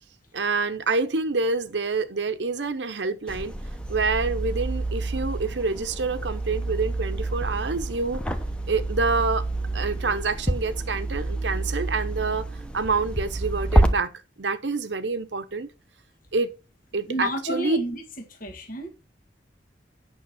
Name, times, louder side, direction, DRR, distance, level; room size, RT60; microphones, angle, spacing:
voice 1, 0.3-3.5 3.9-8.2 8.7-9.4 9.7-12.5 12.7-14.1 14.4-15.7 16.3-16.5 16.9-17.8, right 4 dB, 80° right, 0.9 m, -27 dB
sound 1, 3.3-13.9, right 1 dB, 5° left, 1.0 m, -28 dB
voice 2, 17.0-18.0 18.3-18.9, equal, 50° left, 1.9 m, -30 dB
8.8 x 6.4 x 4.2 m
head